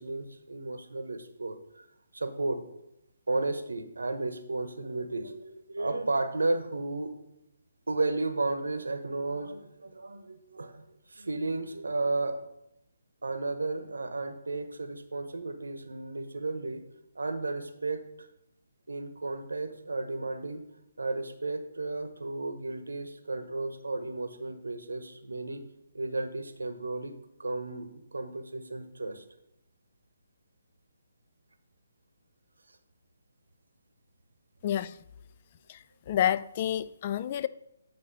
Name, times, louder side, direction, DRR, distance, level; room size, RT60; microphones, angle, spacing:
voice 1, 0.0-1.8 2.1-2.6 3.3-7.1 7.9-10.8 11.1-12.4 13.2-16.8 17.2-18.0 18.9-20.6 21.0-25.6 25.9-27.1 27.4-29.2, right 2 dB, 75° right, 0.9 m, -33 dB
voice 2, 34.6-34.9 35.7-35.8 36.1-37.5, left 10 dB, 35° left, 0.3 m, -28 dB
8.8 x 4.1 x 5.3 m
figure-of-eight pair, 140°, 0 cm